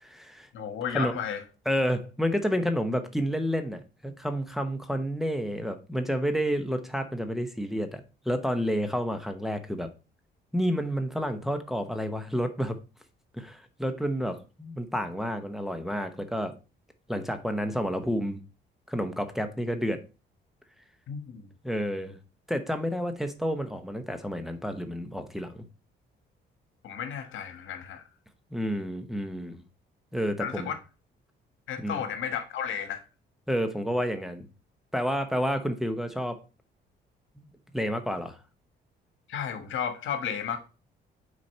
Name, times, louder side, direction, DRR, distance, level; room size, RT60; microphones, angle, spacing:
voice 1, 0.0-0.5 0.9-1.1 1.7-8.0 8.3-9.9 10.5-12.8 13.3-16.5 17.1-18.4 18.9-20.0 21.6-22.2 22.5-25.6 28.5-29.6 30.1-30.7 31.8-32.0 33.5-34.5 34.9-36.4 37.4-37.5 37.7-38.4, equal, ahead, 0.9 m, -30 dB
voice 2, 0.5-1.4 21.1-21.5 26.8-28.0 30.4-30.8 31.7-33.0 39.3-40.6, left 8 dB, 75° left, 1.3 m, -33 dB
6.3 x 4.2 x 4.3 m
cardioid pair, 90°, 20 cm